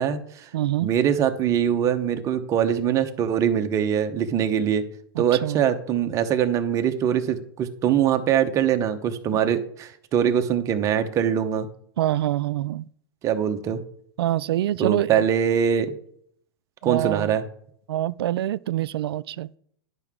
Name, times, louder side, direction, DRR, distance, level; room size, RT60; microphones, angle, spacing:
voice 1, 0.0-0.5 0.8-4.8 5.2-11.7 13.2-13.8 14.8-15.9 16.8-17.4, right 9 dB, 25° right, 0.8 m, -23 dB
voice 2, 0.5-0.9 5.2-5.6 9.3-9.4 12.0-12.9 14.2-15.2 16.8-17.3 17.9-19.5, right 13 dB, 75° right, 0.4 m, -25 dB
11.0 x 5.8 x 3.6 m
hypercardioid pair, 140°, 13 cm